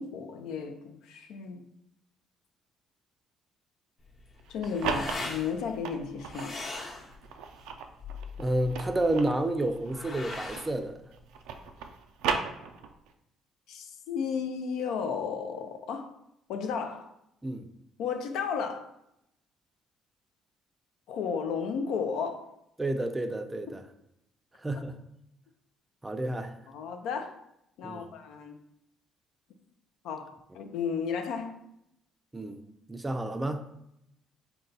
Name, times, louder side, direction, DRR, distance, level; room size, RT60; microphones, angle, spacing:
voice 1, 0.0-1.7 4.5-6.6 13.7-16.1 16.5-17.1 18.0-18.9 21.1-22.5 24.7-24.8 26.7-27.4 27.8-28.6 30.0-31.6, left 6 dB, 80° left, 6 dB, 0.4 m, -33 dB
sound 1, 4.0-11.9, left 3 dB, 50° left, 0.9 m, -42 dB
sound 2, 4.4-6.5 7.1-10.8 11.1-13.1, right 6 dB, 90° right, 0.3 m, -36 dB
voice 2, 8.4-11.0 17.4-17.7 22.8-23.8 24.6-25.0 26.0-26.5 27.8-28.0 32.3-32.6 32.9-33.6, right 1 dB, 15° right, 7 dB, 0.4 m, -30 dB
3.9 x 2.2 x 3.9 m, 0.79 s
cardioid pair, 95°, 0 cm